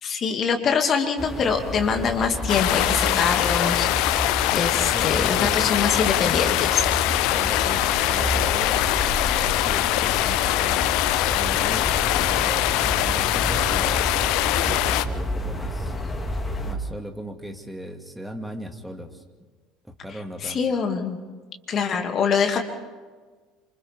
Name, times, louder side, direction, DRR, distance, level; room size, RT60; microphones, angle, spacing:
voice 1, 0.0-3.9 4.5-6.9 20.4-21.2 21.7-22.6, left 6 dB, 40° left, 4 dB, 2.5 m, -24 dB
sound 1, 1.2-16.8, left 1 dB, 20° left, 2.5 m, -30 dB
sound 2, 2.5-15.1, left 15 dB, 60° left, 0.6 m, -23 dB
voice 2, 2.9-3.3 4.9-5.9 7.3-10.9 11.3-14.2 14.6-16.0 16.6-19.2 19.8-20.6, equal, 5° right, 4 dB, 2.4 m, -38 dB
27.5 x 25.5 x 3.7 m, 1.4 s
figure-of-eight pair, 65°, 0 cm